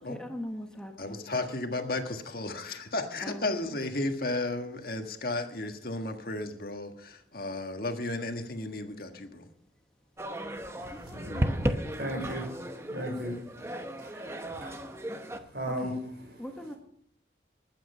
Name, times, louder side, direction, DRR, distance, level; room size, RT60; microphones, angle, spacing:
voice 1, 0.1-1.2 3.2-3.5 10.9-12.2 14.6-14.8 15.8-15.9 16.4-16.7, equal, 5° left, 1.3 m, -41 dB
voice 2, 1.0-9.5, left 2 dB, 55° left, 1.6 m, -34 dB
sound 1, 10.2-15.4, equal, 15° right, 0.9 m, -35 dB
voice 3, 10.8-14.7 15.5-16.4, equal, 65° right, 5.1 m, -37 dB
20.0 x 9.2 x 5.6 m
head